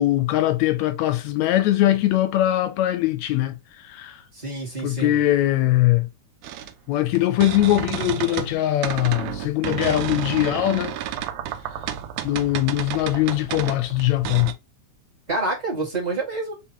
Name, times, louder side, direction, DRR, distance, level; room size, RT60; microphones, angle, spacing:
voice 1, 0.0-3.5 3.8-4.2 4.8-6.1 6.9-10.9 12.2-14.5, left 14 dB, 80° left, 1.7 m, -21 dB
voice 2, 4.3-5.2 15.3-16.5, right 2 dB, 15° right, 1.8 m, -27 dB
sound 1, 6.4-8.5 8.8-14.5, right 11 dB, 80° right, 1.8 m, -31 dB
4.5 x 3.8 x 2.9 m
omnidirectional pair, 3.5 m